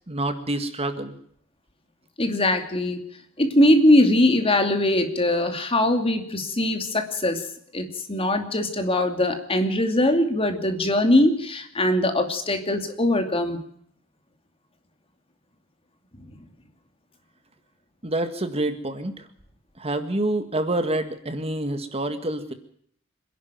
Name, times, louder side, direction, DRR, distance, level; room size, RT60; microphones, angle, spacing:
voice 1, 0.1-1.2 18.0-19.3 19.8-22.5, right 1 dB, 30° right, 8 dB, 1.8 m, -27 dB
voice 2, 2.2-3.0 3.4-7.4 7.7-13.6, left 1 dB, 30° left, 6 dB, 2.7 m, -21 dB
26.0 x 11.5 x 9.2 m, 0.64 s
head